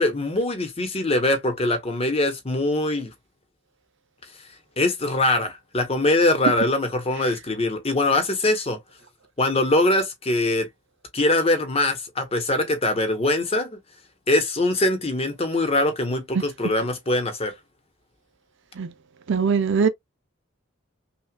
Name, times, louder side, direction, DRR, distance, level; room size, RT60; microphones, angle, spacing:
voice 1, 0.0-3.1 4.8-8.8 9.4-10.7 11.1-13.8 14.3-17.5, left 2 dB, 25° left, 0.9 m, -22 dB
voice 2, 19.3-19.9, right 5 dB, 55° right, 0.4 m, -21 dB
5.8 x 2.3 x 2.2 m
head